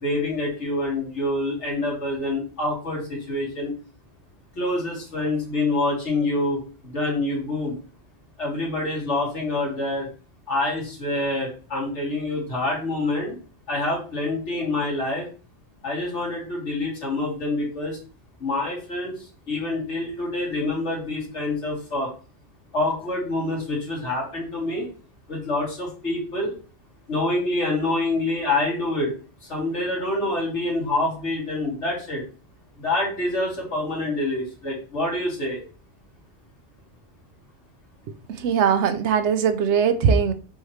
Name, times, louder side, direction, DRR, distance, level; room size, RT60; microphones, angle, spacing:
voice 1, 0.0-3.7 4.6-6.6 6.8-7.7 8.4-10.1 10.5-13.4 13.7-15.3 15.8-18.0 18.4-22.1 22.7-24.9 25.3-26.5 27.1-29.1 29.5-32.2 32.8-35.6, left 2 dB, 80° left, 2.3 m, -26 dB
voice 2, 38.1-40.3, right 7 dB, 80° right, 0.9 m, -21 dB
5.5 x 3.1 x 3.1 m
omnidirectional pair, 1.2 m